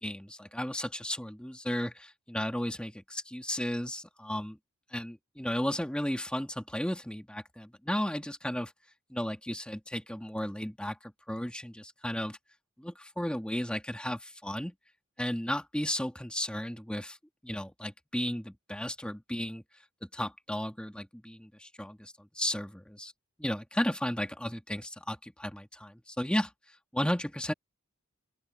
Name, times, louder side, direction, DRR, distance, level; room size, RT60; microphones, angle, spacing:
voice 1, 0.0-4.6 4.9-8.7 9.1-12.4 12.8-14.7 15.2-17.2 17.4-19.6 20.1-23.1 23.4-26.5 26.9-27.5, equal, 5° left, 1.7 m, -34 dB
open air
head